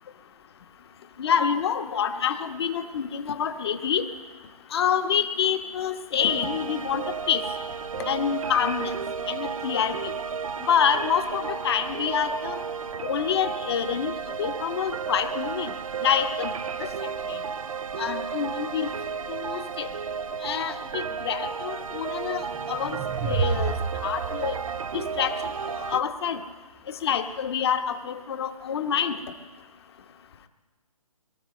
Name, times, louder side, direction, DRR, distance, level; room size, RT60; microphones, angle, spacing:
voice 1, 1.2-4.0 4.7-7.4 8.1-8.9 9.3-10.1 10.7-12.6 13.0-14.1 14.4-15.7 16.0-16.5 16.8-17.4 18.0-18.9 19.3-19.9 20.4-22.4 22.7-23.0 23.2-23.8 24.0-24.6 24.9-25.4 25.7-26.4 26.9-29.2, left 8 dB, 45° left, 7 dB, 1.2 m, -27 dB
sound 1, 6.2-26.0, right 6 dB, 65° right, 0.6 m, -33 dB
sound 2, 22.5-25.9, right 6 dB, 10° right, 0.3 m, -31 dB
23.0 x 13.5 x 3.2 m, 1.3 s
figure-of-eight pair, 140°, 19 cm